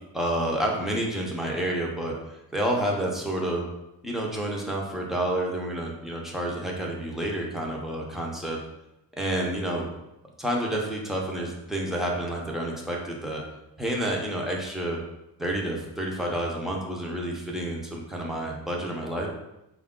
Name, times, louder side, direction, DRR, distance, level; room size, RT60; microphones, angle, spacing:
voice 1, 0.1-2.1 2.5-3.7 4.0-8.6 9.1-9.9 10.4-13.4 13.8-15.0 15.4-19.3, right 1 dB, ahead, -2 dB, 0.6 m, -29 dB
4.8 x 2.4 x 3.6 m, 0.90 s
cardioid pair, 150°, 36 cm